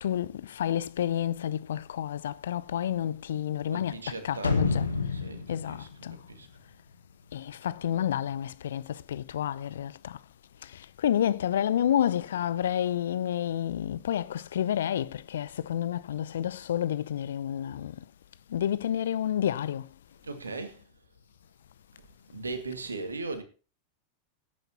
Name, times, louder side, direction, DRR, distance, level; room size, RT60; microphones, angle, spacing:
voice 1, 0.0-4.0 4.2-4.9 5.5-6.2 7.3-10.2 11.0-18.0 18.5-19.9, left 10 dB, 65° left, 0.6 m, -29 dB
voice 2, 3.7-6.5 20.2-20.8 22.3-23.4, right 3 dB, 80° right, 2.0 m, -39 dB
sound 1, 4.4-7.3 7.6-7.7, left 4 dB, 85° left, 1.4 m, -30 dB
17.0 x 9.1 x 2.9 m
figure-of-eight pair, 90°, 0 cm